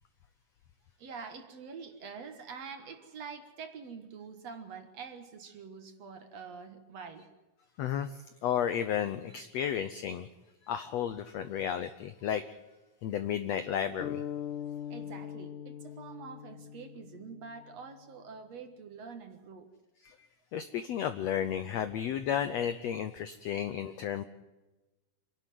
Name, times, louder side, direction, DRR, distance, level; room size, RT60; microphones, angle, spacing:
voice 1, 1.0-7.3 14.9-19.7, right 5 dB, 55° right, 7 dB, 2.3 m, -46 dB
voice 2, 7.8-10.3 10.7-12.4 13.0-14.2 20.0-20.1 20.5-24.2, left 9 dB, 85° left, 11 dB, 1.5 m, -33 dB
sound 1, 14.0-17.9, left 9 dB, 65° left, 2.7 m, -41 dB
26.0 x 11.5 x 9.4 m, 1.1 s
omnidirectional pair, 4.1 m